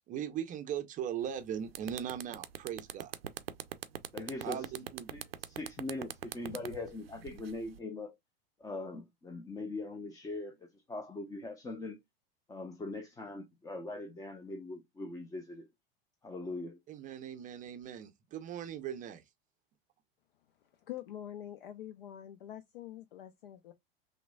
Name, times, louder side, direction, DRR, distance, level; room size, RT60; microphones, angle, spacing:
voice 1, 0.1-3.2 4.4-5.2 16.9-19.2, right 9 dB, 25° right, 0.5 m, -39 dB
sound 1, 1.2-1.4 1.7-7.8, right 10 dB, 75° right, 0.5 m, -42 dB
voice 2, 4.1-4.7 5.1-8.1 8.6-12.0 12.5-15.7 16.2-16.8, left 2 dB, 10° left, 0.6 m, -41 dB
voice 3, 20.9-23.7, left 11 dB, 65° left, 0.6 m, -45 dB
5.8 x 2.2 x 2.3 m
figure-of-eight pair, 85°, 30 cm